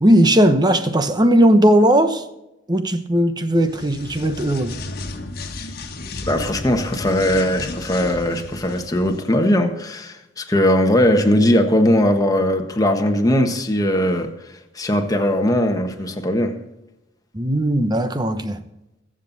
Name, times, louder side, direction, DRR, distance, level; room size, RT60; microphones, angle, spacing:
voice 1, 0.0-2.2 2.7-4.8 17.3-18.6, right 1 dB, 25° right, 1.0 m, -17 dB
sound 1, 3.6-9.3, left 2 dB, 55° left, 1.5 m, -33 dB
voice 2, 6.3-14.3 14.7-16.6, left 1 dB, 20° left, 1.4 m, -19 dB
22.5 x 7.7 x 4.1 m
head